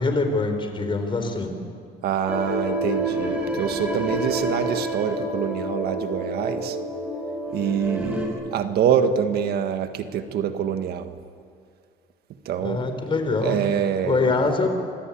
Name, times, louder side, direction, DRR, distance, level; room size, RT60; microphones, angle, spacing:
voice 1, 0.0-1.5 8.0-8.3 12.6-13.6 14.0-14.7, left 3 dB, 30° left, 6 dB, 4.8 m, -24 dB
voice 2, 2.0-6.8 7.5-11.2 12.5-12.8 13.4-14.4, right 8 dB, 70° right, 8 dB, 1.7 m, -25 dB
sound 1, 2.3-8.3, right 1 dB, 5° right, 6.4 m, -28 dB
27.0 x 22.5 x 8.8 m, 2.2 s
cardioid pair, 110°, 17 cm